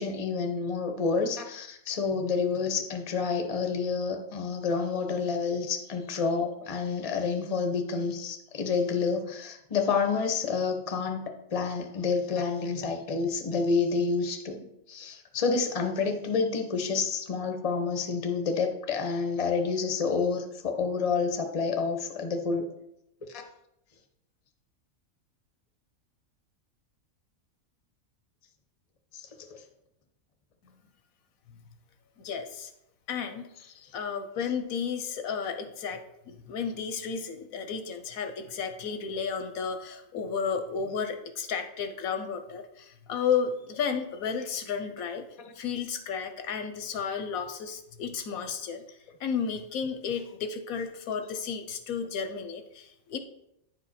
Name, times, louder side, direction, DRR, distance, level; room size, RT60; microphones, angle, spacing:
voice 1, 0.0-22.7 23.3-23.4 29.1-29.2 29.5-29.6, left 5 dB, 30° left, 5 dB, 0.8 m, -29 dB
voice 2, 32.2-32.7 33.1-33.5 33.9-45.3 45.5-48.8 49.2-53.2, left 6 dB, 85° left, 8 dB, 1.3 m, -33 dB
9.3 x 4.9 x 4.2 m, 0.81 s
omnidirectional pair, 1.4 m